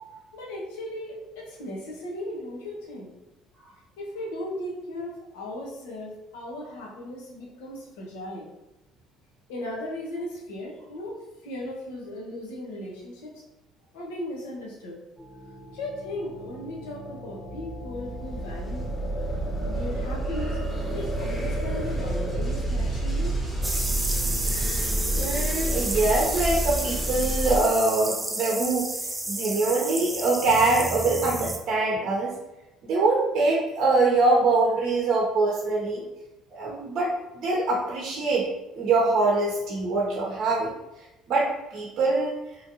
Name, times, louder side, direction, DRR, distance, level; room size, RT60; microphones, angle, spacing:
voice 1, 0.3-3.1 4.0-8.5 9.5-11.2 11.4-13.4 13.9-15.0 15.7-18.9 19.6-23.4, left 1 dB, 85° left, -3 dB, 0.9 m, -37 dB
sound 1, 15.2-27.6, right 1 dB, 10° left, 0.9 m, -29 dB
sound 2, 23.6-31.6, right 2 dB, 15° right, 0.4 m, -31 dB
voice 2, 25.1-28.9 29.3-32.3 32.8-36.0 36.5-38.5 38.7-40.7 41.3-42.4, right 3 dB, 60° right, -3 dB, 0.7 m, -24 dB
3.0 x 2.6 x 2.8 m, 0.96 s
supercardioid pair, 80°, 0 cm